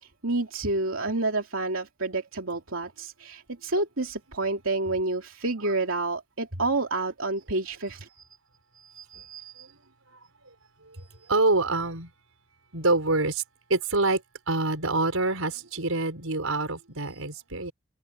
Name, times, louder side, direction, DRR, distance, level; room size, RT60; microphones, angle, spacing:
voice 1, 0.0-8.1, right 2 dB, 70° right, 3.2 m, -29 dB
voice 2, 9.0-9.7 11.3-12.1 12.7-13.4 13.7-14.2 14.5-17.7, right 2 dB, 90° right, 5.4 m, -26 dB
head